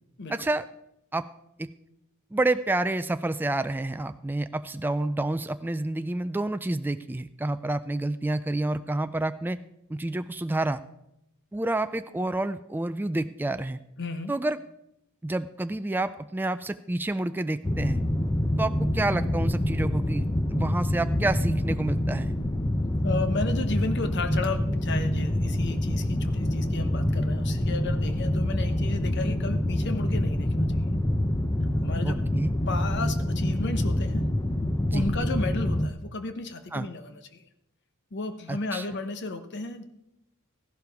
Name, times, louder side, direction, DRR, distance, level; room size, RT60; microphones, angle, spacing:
voice 1, 0.3-0.7 1.1-1.2 1.6-1.7 2.3-9.6 9.9-10.8 11.5-13.8 14.3-14.6 15.2-18.0 18.6-22.3 32.0-32.5 34.8-35.1 36.7-36.9 38.5-38.9, right 2 dB, 10° right, 10 dB, 0.3 m, -29 dB
voice 2, 14.0-14.3 23.0-30.5 31.8-32.2 32.7-34.2 34.9-37.4 38.1-39.8, left 3 dB, 55° left, 9 dB, 0.9 m, -33 dB
sound 1, 17.6-35.9, left 1 dB, 15° left, 0.6 m, -26 dB
14.5 x 11.5 x 3.5 m, 0.84 s
head